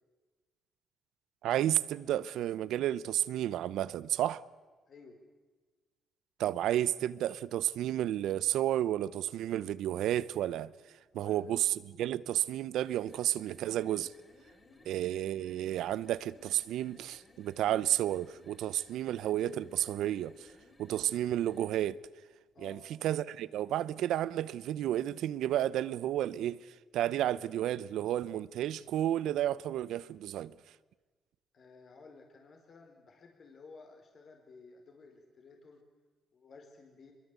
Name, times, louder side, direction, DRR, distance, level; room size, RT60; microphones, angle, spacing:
voice 1, 1.4-4.4 6.4-10.7 11.1-14.1 14.8-20.5 20.8-22.0 22.6-30.5, right 12 dB, 80° right, 0.7 m, -32 dB
voice 2, 4.9-5.2 11.1-11.5 14.6-14.9 22.5-22.8 31.5-35.8 36.3-37.1, left 4 dB, 55° left, 4.4 m, -55 dB
sound 1, 12.7-21.9, left 2 dB, 25° left, 5.2 m, -61 dB
24.5 x 22.0 x 8.3 m
cardioid pair, 90°, 0 cm